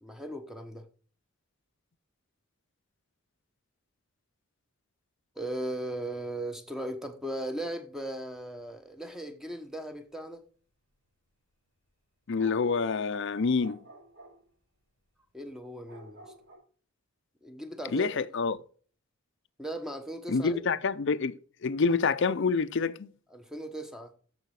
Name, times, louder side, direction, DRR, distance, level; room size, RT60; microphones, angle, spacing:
voice 1, 0.0-0.8 5.4-10.4 15.3-16.3 17.4-18.1 19.6-20.6 23.3-24.1, right 1 dB, ahead, 0.9 m, -37 dB
voice 2, 12.3-13.8 17.9-18.6 20.3-23.1, left 4 dB, 60° left, 0.5 m, -27 dB
sound 1, 12.3-14.4 15.8-16.6, right 1 dB, 60° right, 6.1 m, -49 dB
13.5 x 5.1 x 4.8 m
head